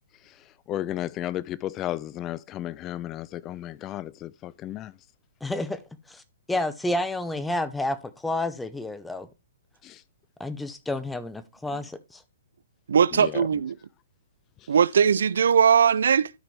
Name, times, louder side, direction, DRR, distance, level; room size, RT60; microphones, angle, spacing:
voice 1, 0.2-4.9 9.8-10.0 13.1-13.5, left 13 dB, 25° left, 0.3 m, -34 dB
voice 2, 5.4-5.8 6.1-6.2 6.5-9.3 10.4-12.2, left 1 dB, 5° left, 0.9 m, -30 dB
voice 3, 12.9-13.8 14.7-16.3, right 7 dB, 70° right, 0.4 m, -20 dB
12.5 x 4.9 x 3.3 m
hypercardioid pair, 125°, 0 cm